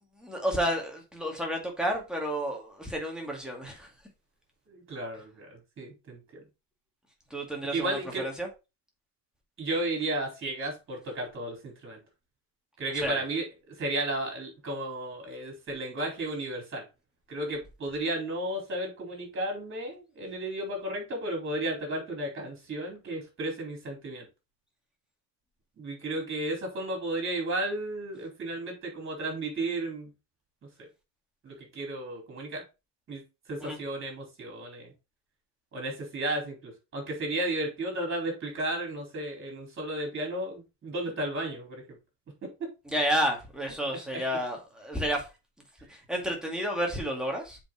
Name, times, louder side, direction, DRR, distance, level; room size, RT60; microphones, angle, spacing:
voice 1, 0.2-3.9 7.3-8.5 12.9-13.2 33.6-33.8 42.9-45.3 45.9-47.6, equal, ahead, 2.3 m, -31 dB
voice 2, 4.7-6.4 7.7-8.3 9.6-12.0 12.8-16.8 17.3-24.3 25.8-30.1 30.8-30.9 31.4-32.6 33.1-33.2 33.5-34.9 35.7-41.8 42.6-42.7 44.1-44.2, right 1 dB, 30° right, 4.2 m, -33 dB
7.5 x 5.1 x 4.5 m
cardioid pair, 160°, 43 cm